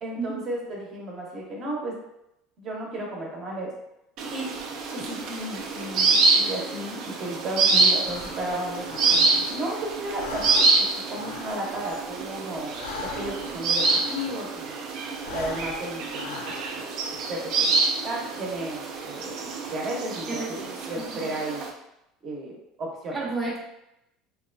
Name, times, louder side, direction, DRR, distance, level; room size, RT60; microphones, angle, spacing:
voice 1, 0.0-1.9 2.6-3.7 4.3-4.5 4.9-12.8 13.0-14.8 15.3-16.9 17.3-20.4 20.9-21.6 22.2-23.3, right 1 dB, 45° right, -2 dB, 0.8 m, -34 dB
sound 1, 4.2-21.7, right 3 dB, 60° right, 0.4 m, -26 dB
Breathing, 8.0-9.8 10.1-14.7 15.1-17.1, left 5 dB, 90° left, 0.3 m, -40 dB
voice 2, 20.3-21.2 23.1-23.6, right 3 dB, 15° right, -5 dB, 0.6 m, -32 dB
2.8 x 2.2 x 2.5 m, 0.84 s
supercardioid pair, 105°, 0 cm